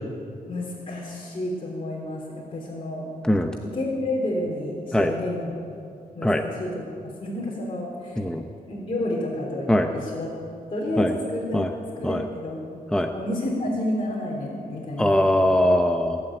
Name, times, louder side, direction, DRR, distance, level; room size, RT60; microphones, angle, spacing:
voice 1, 0.5-3.1 3.6-5.5 6.1-6.8 7.2-8.2 8.7-10.3 10.7-12.6 13.1-15.2, left 1 dB, 40° left, -5 dB, 3.6 m, -30 dB
voice 2, 15.0-16.2, left 1 dB, 5° left, 5 dB, 0.8 m, -21 dB
19.5 x 7.7 x 9.0 m, 2.5 s
cardioid pair, 80°, 15 cm